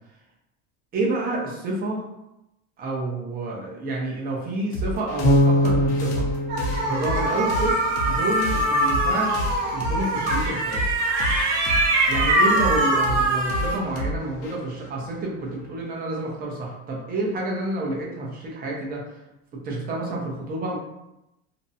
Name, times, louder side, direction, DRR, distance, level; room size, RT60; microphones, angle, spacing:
voice 1, 0.9-2.0 2.8-6.3 6.9-7.8 8.0-10.9 12.1-19.0 19.5-20.8, right 2 dB, 25° right, -2 dB, 0.6 m, -29 dB
sound 1, 4.7-15.8, equal, 80° left, 0.7 m, -31 dB
Bass guitar, 5.2-8.3, equal, 25° left, 0.8 m, -23 dB
sound 2, 6.5-13.8, right 2 dB, 80° right, 0.9 m, -23 dB
2.6 x 2.1 x 2.7 m, 0.91 s
cardioid pair, 145°, 36 cm